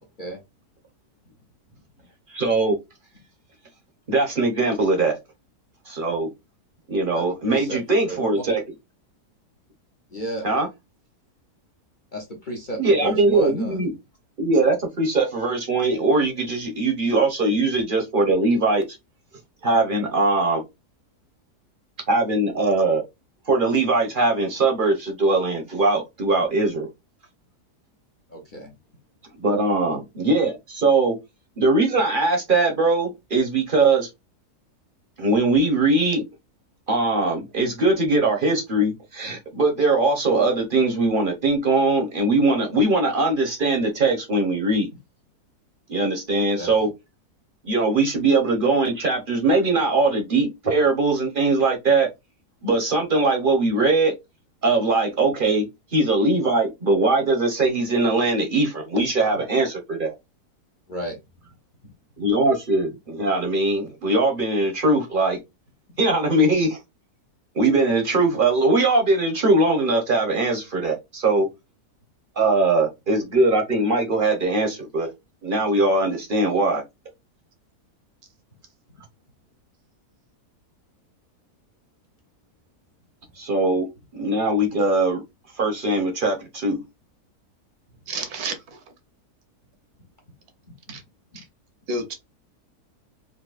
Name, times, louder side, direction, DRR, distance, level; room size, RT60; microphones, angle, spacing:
voice 1, 2.3-2.8 4.1-5.2 5.9-6.3 6.9-8.6 10.4-10.7 12.8-13.9 14.4-18.8 19.6-20.7 22.1-23.0 23.5-26.9 29.4-31.1 31.6-34.1 35.2-36.2 36.9-44.9 45.9-46.9 47.6-52.1 52.6-54.1 54.6-55.7 55.9-60.1 62.2-65.4 66.0-66.8 67.5-71.5 72.4-75.1 75.4-76.8 83.4-83.9 84.1-85.2 85.6-86.8, right 2 dB, 40° right, 0.8 m, -21 dB
voice 2, 7.1-7.8 8.1-8.4 10.1-10.5 12.1-13.8 28.3-28.7 46.5-46.7 60.9-61.2 90.9-91.0, right 1 dB, 40° left, 0.7 m, -33 dB
voice 3, 88.1-88.6 90.9-91.0 91.9-92.1, right 2 dB, 70° right, 1.3 m, -29 dB
3.9 x 2.6 x 2.4 m
omnidirectional pair, 1.7 m